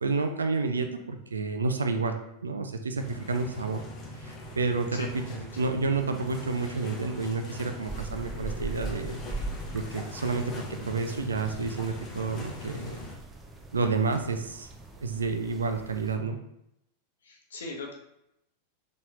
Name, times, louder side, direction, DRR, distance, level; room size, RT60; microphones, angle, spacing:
voice 1, 0.0-3.8 4.2-5.2 5.6-9.2 9.7-13.0 13.7-14.7 15.0-16.4, right 4 dB, 75° right, 6 dB, 0.3 m, -30 dB
sound 1, 3.0-13.2, left 2 dB, 30° left, 0.9 m, -41 dB
voice 2, 4.9-5.5 17.2-17.9, left 2 dB, 65° left, 0 dB, 0.8 m, -40 dB
sound 2, 7.9-16.2, right 3 dB, 15° right, 0.5 m, -41 dB
4.1 x 3.0 x 2.4 m, 0.81 s
figure-of-eight pair, 90°, 0 cm